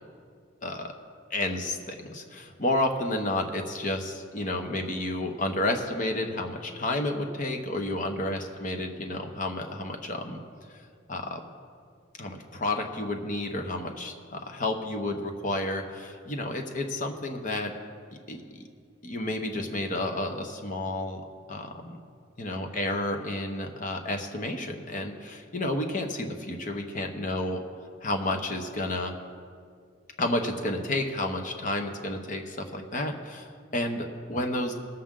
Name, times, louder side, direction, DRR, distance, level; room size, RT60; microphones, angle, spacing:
voice 1, 0.6-0.9 1.3-10.4 11.1-11.4 12.2-17.7 18.1-18.4 19.0-21.2 21.5-22.0 22.4-27.6 28.0-29.1 30.2-33.5 33.7-34.7, left 1 dB, 40° left, 4 dB, 1.0 m, -31 dB
19.0 x 7.4 x 3.8 m, 2.2 s
head